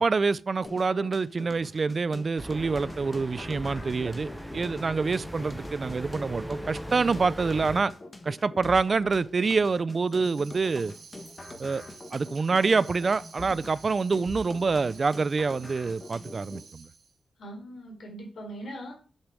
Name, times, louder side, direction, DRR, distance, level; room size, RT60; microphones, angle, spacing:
voice 1, 0.0-7.9 8.2-10.9 11.6-11.8 12.1-16.9, right 4 dB, 35° right, 0.3 m, -26 dB
sound 1, 0.6-16.6, left 2 dB, 25° left, 1.5 m, -44 dB
sound 2, 2.4-7.8, equal, ahead, 0.8 m, -39 dB
Tambourine, 10.1-17.2, right 5 dB, 85° right, 2.0 m, -51 dB
voice 2, 17.4-19.0, right 1 dB, 65° left, 4.5 m, -40 dB
8.1 x 6.7 x 4.8 m
wide cardioid pair, 150°, 0 cm